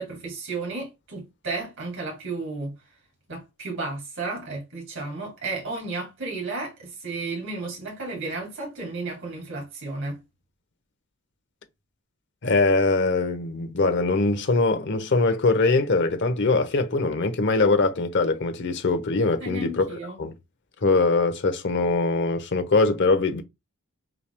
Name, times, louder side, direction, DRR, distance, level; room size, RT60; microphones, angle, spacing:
voice 1, 0.0-2.7 3.3-10.2 19.4-20.2, right 3 dB, 60° right, 2.1 m, -33 dB
voice 2, 12.4-19.8 20.2-20.3 20.8-23.4, left 3 dB, 55° left, 0.8 m, -22 dB
6.0 x 3.3 x 2.2 m
head